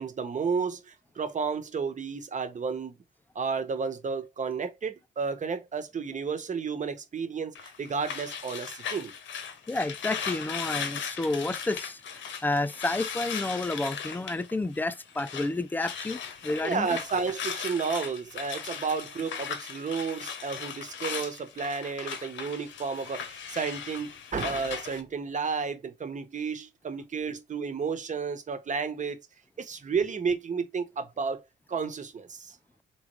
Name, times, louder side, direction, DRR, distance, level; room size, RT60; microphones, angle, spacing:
voice 1, 0.0-2.9 3.3-9.1 16.6-29.2 29.6-31.4 31.7-32.6, right 5 dB, 40° right, 1.1 m, -32 dB
sound 1, 7.6-15.5 15.8-25.0, left 7 dB, 70° left, 1.0 m, -38 dB
voice 2, 9.7-12.0 12.4-16.9, left 2 dB, 10° left, 0.4 m, -30 dB
3.6 x 3.1 x 4.6 m
cardioid pair, 90°, 20 cm